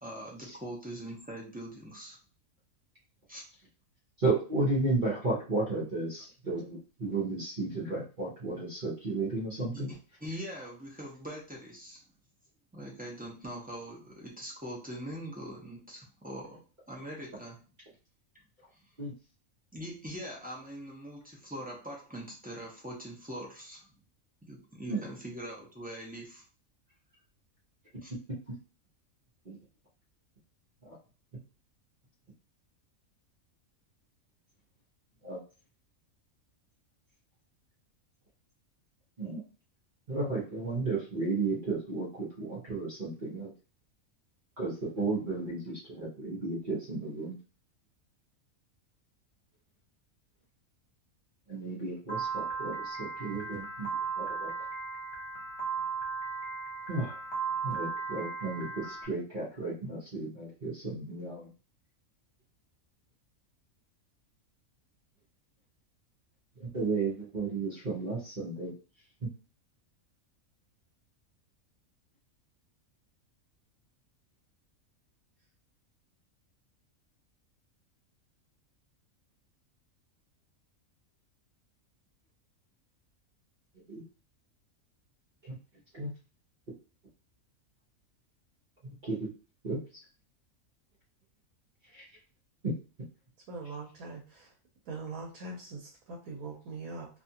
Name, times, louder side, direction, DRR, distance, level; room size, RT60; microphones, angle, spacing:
voice 1, 0.0-2.2 3.3-3.4 9.6-12.0 12.7-17.7 18.7-18.8 19.7-23.9 24.4-26.4 28.0-28.1, right 1 dB, 15° right, -4 dB, 0.4 m, -42 dB
voice 2, 4.2-9.9 19.0-19.1 24.9-25.0 29.4-29.6 30.8-30.9 35.2-35.4 39.2-39.4 40.1-43.5 44.6-47.3 51.5-53.9 54.2-54.5 56.9-57.1 57.6-61.5 66.7-68.7 69.2-69.3 83.9-84.0 85.4-85.5 85.9-86.1 88.8-89.3 89.6-89.8 91.9-92.0, right 3 dB, 40° right, -6 dB, 0.9 m, -33 dB
Piano, 52.1-59.1, right 5 dB, 55° left, 1.1 m, -36 dB
voice 3, 93.5-94.5 94.9-97.1, right 3 dB, 80° right, -1 dB, 1.1 m, -42 dB
2.7 x 2.4 x 2.7 m, 0.35 s
omnidirectional pair, 1.5 m